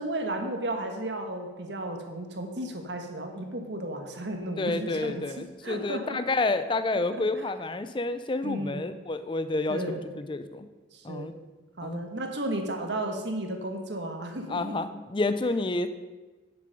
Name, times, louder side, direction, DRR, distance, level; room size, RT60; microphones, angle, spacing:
voice 1, 0.0-6.2 7.1-7.5 8.4-8.8 9.7-10.0 10.9-11.3 11.8-14.7, right 1 dB, 65° right, 4 dB, 1.4 m, -34 dB
voice 2, 4.6-10.7 11.0-11.3 11.8-12.0 14.5-15.9, left 2 dB, 25° left, 11 dB, 0.5 m, -29 dB
10.0 x 6.8 x 5.3 m, 1.2 s
head